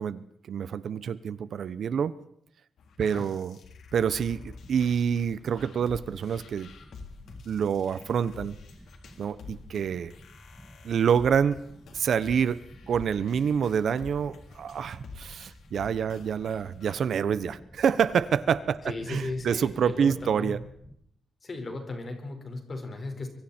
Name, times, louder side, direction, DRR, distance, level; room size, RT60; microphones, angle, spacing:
voice 1, 0.0-2.1 3.0-3.6 3.9-6.7 7.5-8.6 9.2-10.1 10.8-11.6 11.9-20.6, right 7 dB, 55° right, 15 dB, 0.8 m, -27 dB
sound 1, 2.8-16.9, left 4 dB, 75° left, 3.6 m, -48 dB
sound 2, 4.0-21.0, equal, 5° left, 1.5 m, -52 dB
voice 2, 18.8-20.6 21.4-23.3, left 2 dB, 30° left, 4 dB, 4.8 m, -36 dB
25.0 x 24.0 x 4.4 m, 0.72 s
wide cardioid pair, 160°, 0 cm